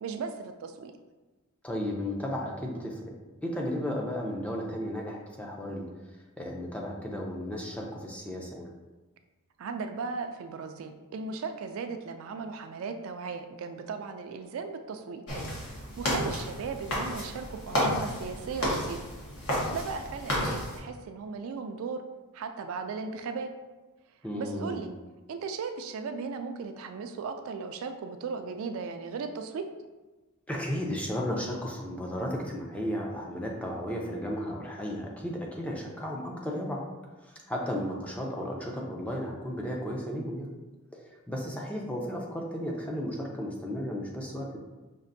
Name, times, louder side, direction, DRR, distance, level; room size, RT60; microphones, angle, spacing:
voice 1, 0.0-0.9 9.6-15.2 15.6-19.0 19.5-22.0 22.3-23.5 24.4-24.9 25.3-29.7, right 5 dB, 65° right, 6 dB, 0.3 m, -37 dB
voice 2, 1.6-3.1 3.4-5.9 6.4-8.7 24.2-24.8 30.5-36.8 37.2-40.5 40.9-44.6, equal, 5° left, -1 dB, 0.4 m, -34 dB
sound 1, 15.3-20.8, equal, 70° left, 1.2 m, -32 dB
5.2 x 2.5 x 2.6 m, 1.2 s
head